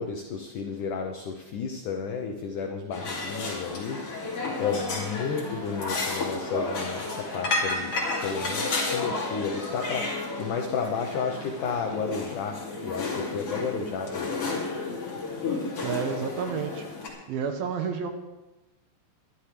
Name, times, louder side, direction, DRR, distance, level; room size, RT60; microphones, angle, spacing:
voice 1, 0.0-4.1 4.6-7.9 8.2-14.5, left 5 dB, 85° left, 3 dB, 1.7 m, -32 dB
sound 1, 2.9-17.1, left 3 dB, 40° left, 3.0 m, -32 dB
voice 2, 15.8-16.8 17.3-18.1, right 6 dB, 70° right, 6 dB, 2.5 m, -30 dB
21.5 x 12.0 x 3.4 m, 1.0 s
omnidirectional pair, 4.9 m